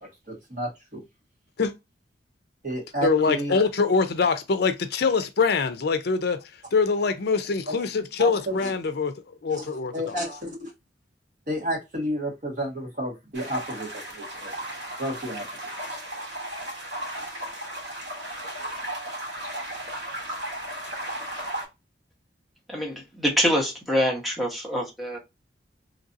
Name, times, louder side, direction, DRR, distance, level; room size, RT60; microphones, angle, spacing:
voice 1, 0.3-1.0 2.6-3.5 7.7-7.8 8.2-8.7 9.5-9.7 9.9-10.7 11.5-14.5 15.0-15.4, equal, 50° right, 1.6 m, -31 dB
voice 2, 3.0-10.2, left 4 dB, 60° left, 0.5 m, -24 dB
sound 1, 13.3-21.6, right 1 dB, 70° right, 1.3 m, -35 dB
voice 3, 22.7-25.2, equal, ahead, 0.9 m, -25 dB
3.1 x 2.6 x 2.5 m
head